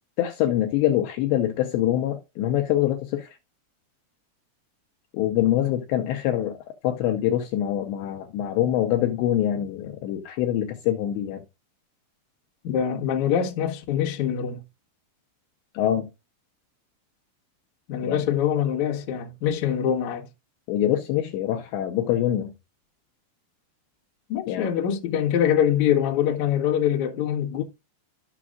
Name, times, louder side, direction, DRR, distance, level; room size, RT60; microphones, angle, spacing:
voice 1, 0.2-3.4 5.1-11.4 15.7-16.1 18.1-18.2 20.7-22.5 24.5-24.7, left 12 dB, 80° left, 2.7 m, -24 dB
voice 2, 12.6-14.6 17.9-20.3 24.3-27.6, left 9 dB, 60° left, 2.1 m, -24 dB
13.5 x 6.0 x 2.4 m
omnidirectional pair, 5.6 m